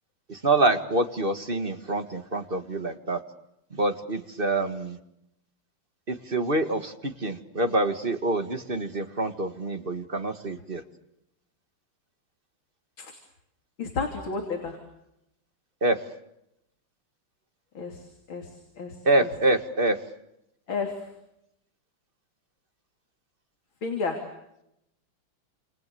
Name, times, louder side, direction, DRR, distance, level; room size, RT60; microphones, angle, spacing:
voice 1, 0.3-3.2 3.7-5.0 6.1-10.8 15.8-16.0 19.1-20.0, right 2 dB, 25° right, 8 dB, 1.8 m, -26 dB
voice 2, 13.8-14.8 17.7-18.0 18.3-19.3 20.7-21.1 23.8-24.2, left 4 dB, 65° left, 3 dB, 3.9 m, -32 dB
29.5 x 28.5 x 7.0 m, 0.83 s
omnidirectional pair, 2.4 m